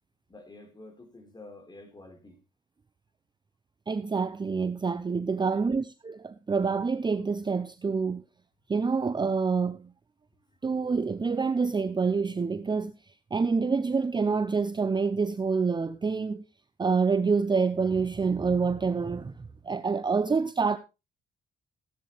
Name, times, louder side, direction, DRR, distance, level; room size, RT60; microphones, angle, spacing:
voice 1, 0.3-2.4 5.4-5.7, left 2 dB, 20° left, 4.2 m, -49 dB
voice 2, 3.9-8.2 8.7-9.9 10.6-16.4 16.8-19.3 19.6-20.8, right 5 dB, 20° right, 0.7 m, -27 dB
16.5 x 9.1 x 3.3 m
cardioid pair, 90°, 20 cm